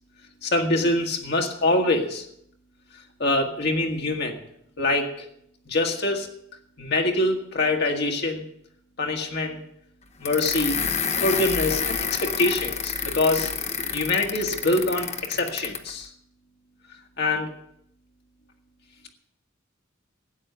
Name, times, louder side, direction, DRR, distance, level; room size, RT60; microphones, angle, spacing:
voice 1, 0.4-2.3 3.2-4.4 4.8-5.3 5.7-6.3 6.8-8.4 9.0-9.6 10.2-10.8 11.2-13.5 13.9-16.1 17.2-17.5, left 2 dB, 55° left, 2 dB, 1.6 m, -24 dB
sound 1, 10.2-15.9, left 6 dB, 35° left, 0.9 m, -29 dB
13.0 x 8.9 x 6.8 m, 0.73 s
head